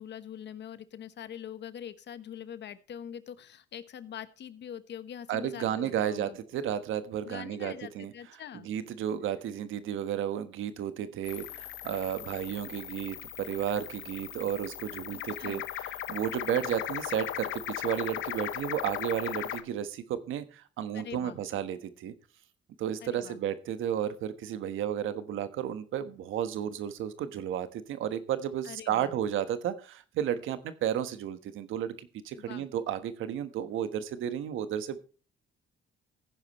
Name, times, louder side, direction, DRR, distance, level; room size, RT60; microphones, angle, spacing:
voice 1, 0.0-6.4 7.2-8.7 15.1-15.6 20.9-21.4 23.0-23.4 28.6-29.1 32.4-32.7, left 9 dB, 60° left, 13 dB, 1.2 m, -43 dB
voice 2, 5.3-8.1 8.6-22.1 22.8-35.0, right 10 dB, 85° right, 12 dB, 1.3 m, -33 dB
sound 1, 11.2-19.6, left 13 dB, 80° left, 1.0 m, -38 dB
15.0 x 10.0 x 3.1 m, 0.37 s
cardioid pair, 90°, 20 cm